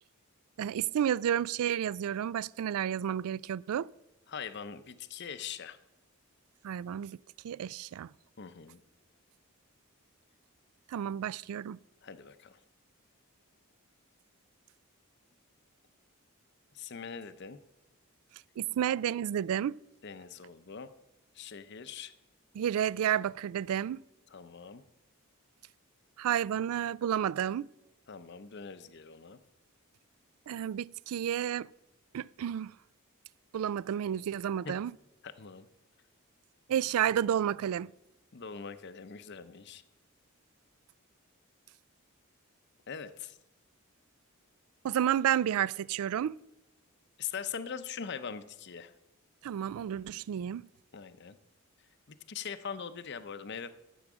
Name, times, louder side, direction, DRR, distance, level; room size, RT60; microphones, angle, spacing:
voice 1, 0.6-3.9 6.6-7.2 7.4-8.1 10.9-11.8 18.6-19.8 22.5-24.0 26.2-27.7 30.5-31.7 32.1-32.7 33.5-34.9 36.7-37.9 44.8-46.4 49.4-50.7, right 9 dB, 75° right, 0.3 m, -31 dB
voice 2, 4.3-5.8 8.4-8.8 12.0-12.6 16.7-17.6 20.0-20.9 21.3-22.1 24.3-24.8 28.1-29.4 34.6-34.7 35.2-35.7 38.3-39.8 42.9-43.4 47.2-48.9 50.9-51.4 52.1-53.7, left 6 dB, 50° left, 0.6 m, -42 dB
12.0 x 7.8 x 6.1 m
head